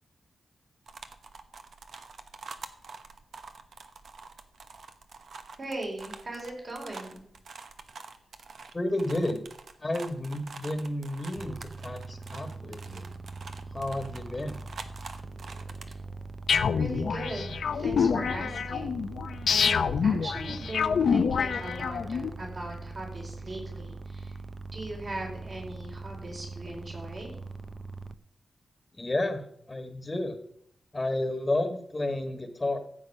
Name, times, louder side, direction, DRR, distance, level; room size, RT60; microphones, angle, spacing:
sound 1, 0.9-15.9, right 4 dB, 70° right, 1.1 m, -46 dB
voice 1, 5.6-7.2 16.7-19.1 19.5-24.4 24.7-27.3, right 1 dB, 45° right, -1 dB, 4.9 m, -39 dB
voice 2, 8.7-9.4 9.8-13.1 13.7-14.6 28.9-30.4 30.9-32.8, left 1 dB, 25° left, 7 dB, 1.4 m, -31 dB
sound 2, 11.4-28.1, right 3 dB, 30° right, 0.6 m, -41 dB
sound 3, 16.5-22.3, left 6 dB, 80° left, 0.7 m, -27 dB
14.5 x 8.2 x 5.5 m, 0.71 s
wide cardioid pair, 95°, 0 cm